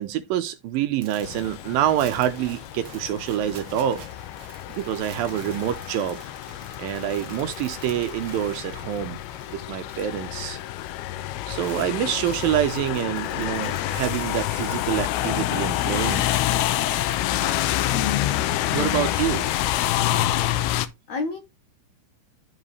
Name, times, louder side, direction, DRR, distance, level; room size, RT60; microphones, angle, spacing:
voice 1, 0.0-4.1 4.7-6.2 6.8-9.2 9.5-10.6 11.5-16.2 18.7-19.5, right 11 dB, 80° right, 2.2 m, -26 dB
sound 1, 1.0-10.3 10.5-10.9 11.2-18.2, right 6 dB, 60° right, 1.4 m, -48 dB
sound 2, 1.2-20.9, left 13 dB, 85° left, 2.7 m, -28 dB
voice 2, 17.9-19.2 21.1-21.4, left 6 dB, 65° left, 1.8 m, -30 dB
12.5 x 5.2 x 3.2 m
omnidirectional pair, 4.5 m